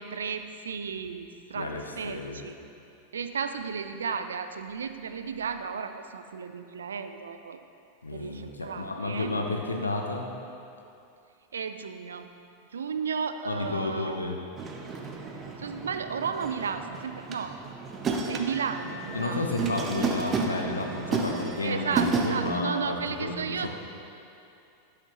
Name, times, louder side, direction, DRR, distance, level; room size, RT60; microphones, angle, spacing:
voice 1, 0.0-2.5 3.1-7.6 8.1-9.3 11.5-12.3 12.7-14.2 15.6-17.5 18.3-19.6 21.6-23.7, right 6 dB, 70° right, 9 dB, 0.4 m, -34 dB
voice 2, 1.6-2.4 8.0-10.3 13.5-14.4 19.1-23.7, left 2 dB, 80° left, 2 dB, 0.8 m, -31 dB
sound 1, 14.6-22.6, right 4 dB, 25° right, 0.7 m, -32 dB
11.5 x 6.6 x 3.0 m, 2.6 s
figure-of-eight pair, 90°, 0 cm